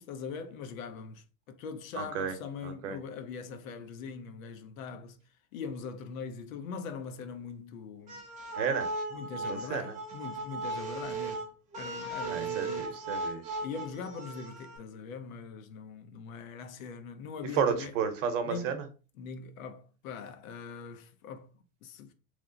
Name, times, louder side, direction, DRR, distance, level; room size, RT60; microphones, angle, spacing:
voice 1, 0.0-5.2 5.5-8.3 9.1-11.5 11.8-13.0 13.6-17.9 18.4-18.8 19.2-21.5 21.8-22.1, left 5 dB, 70° left, 0.8 m, -42 dB
voice 2, 2.0-2.3 2.6-3.0 8.5-8.9 9.5-9.9 12.3-13.6 17.5-18.9, right 7 dB, 60° right, 0.9 m, -32 dB
sound 1, 8.1-14.8, right 3 dB, 15° right, 0.8 m, -37 dB
3.2 x 2.0 x 3.8 m
supercardioid pair, 160°, 43 cm